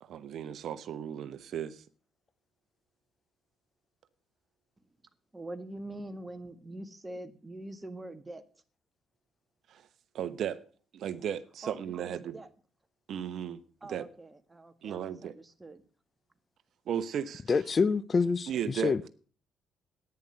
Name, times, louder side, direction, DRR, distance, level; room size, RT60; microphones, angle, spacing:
voice 1, 0.0-1.8 9.7-9.9 10.1-10.6 10.9-12.3 13.1-14.1 14.8-15.4 16.9-17.4 18.5-19.1, right 9 dB, 65° right, 0.9 m, -35 dB
voice 2, 5.3-8.4 11.6-12.5 13.8-15.8, right 1 dB, 20° right, 1.7 m, -44 dB
voice 3, 17.5-19.1, left 4 dB, 40° left, 0.6 m, -27 dB
10.5 x 9.8 x 7.7 m
supercardioid pair, 55°, 0 cm